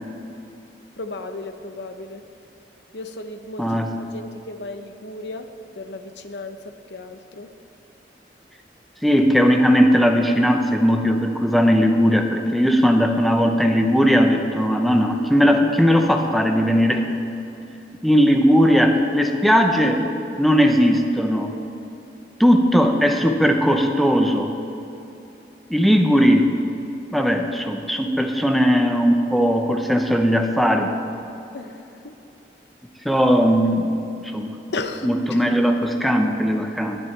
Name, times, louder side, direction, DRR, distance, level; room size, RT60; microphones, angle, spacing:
voice 1, 1.0-2.2 2.9-3.7 4.1-5.5 5.8-7.5 31.5-32.1 34.7-35.4, left 2 dB, 80° left, 7 dB, 0.8 m, -34 dB
voice 2, 9.0-17.0 18.0-20.0 20.4-21.5 22.4-24.5 25.7-26.5 27.1-30.9 33.0-34.0 34.3-34.6 35.0-37.0, equal, ahead, 3 dB, 0.8 m, -18 dB
18.5 x 10.5 x 3.4 m, 2.9 s
head